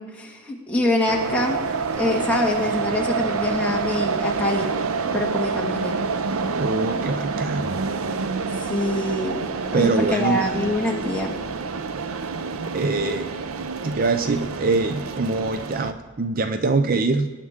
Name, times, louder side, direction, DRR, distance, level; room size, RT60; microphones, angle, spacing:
voice 1, 0.0-1.6 2.0-4.7 5.1-6.0 8.5-9.4 9.7-11.4, left 1 dB, 5° left, -2 dB, 1.8 m, -25 dB
sound 1, 1.1-15.9, right 4 dB, 85° right, 0.6 m, -27 dB
voice 2, 6.6-7.9 9.7-10.4 12.7-13.3 13.8-17.3, right 3 dB, 45° right, 9 dB, 0.5 m, -23 dB
19.0 x 9.7 x 3.6 m, 1.4 s
head